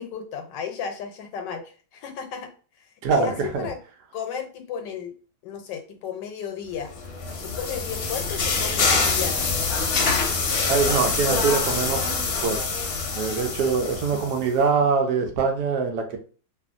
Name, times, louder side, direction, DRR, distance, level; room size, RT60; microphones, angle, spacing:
voice 1, 0.0-2.5 2.8-3.8 4.1-5.1 5.4-6.9 7.4-9.5, left 7 dB, 85° left, 6 dB, 1.2 m, -34 dB
voice 2, 3.0-3.7 10.6-12.6 13.1-16.2, right 5 dB, 75° right, 4 dB, 1.1 m, -24 dB
sound 1, 6.9-14.5, left 4 dB, 65° left, 1.0 m, -25 dB
2.8 x 2.5 x 2.5 m, 0.38 s
omnidirectional pair, 1.9 m